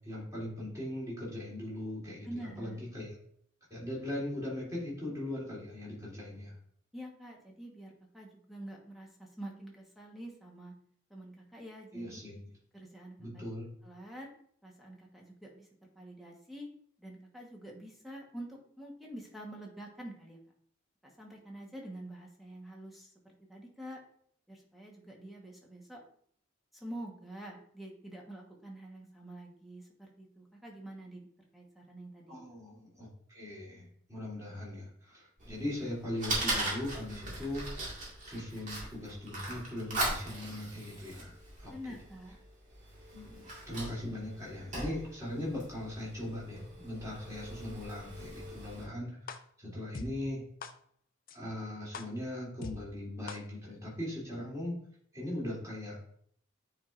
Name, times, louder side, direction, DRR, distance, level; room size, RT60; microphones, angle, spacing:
voice 1, 0.0-3.2 3.7-6.5 11.9-12.5 13.2-13.7 32.3-37.9 38.2-41.7 43.1-50.4 51.3-54.7 55.1-56.0, left 1 dB, 15° right, -6 dB, 2.9 m, -39 dB
voice 2, 2.2-2.8 6.9-10.7 11.1-12.2 12.7-13.5 13.8-14.3 14.6-16.7 17.0-20.4 21.0-24.0 24.5-26.0 26.7-31.3 31.5-32.3 41.7-42.4, right 1 dB, ahead, -1 dB, 1.2 m, -47 dB
Fire, 35.4-48.8, right 1 dB, 35° right, 1.9 m, -40 dB
sound 1, 49.3-49.4 49.9-50.1 50.6-50.7 51.3-51.4 51.9-52.0 52.6-52.7 53.3-53.4, left 4 dB, 45° left, 0.5 m, -40 dB
9.2 x 4.5 x 2.5 m, 0.63 s
head